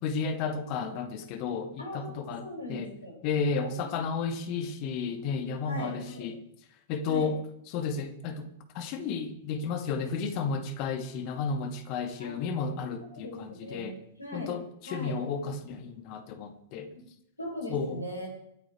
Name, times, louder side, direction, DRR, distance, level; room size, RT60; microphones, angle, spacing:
voice 1, 0.0-2.9 3.2-6.4 6.9-7.4 7.7-8.5 8.7-14.0 14.3-16.9 17.7-18.1, left 5 dB, 40° left, 2.3 m, -32 dB
voice 2, 1.8-3.2 3.5-3.9 5.6-6.2 7.1-7.3 12.2-12.3 13.2-14.5 14.8-15.1 17.4-18.3, left 1 dB, 85° left, 7.7 m, -39 dB
24.5 x 8.9 x 4.6 m
figure-of-eight pair, 100°, 0 cm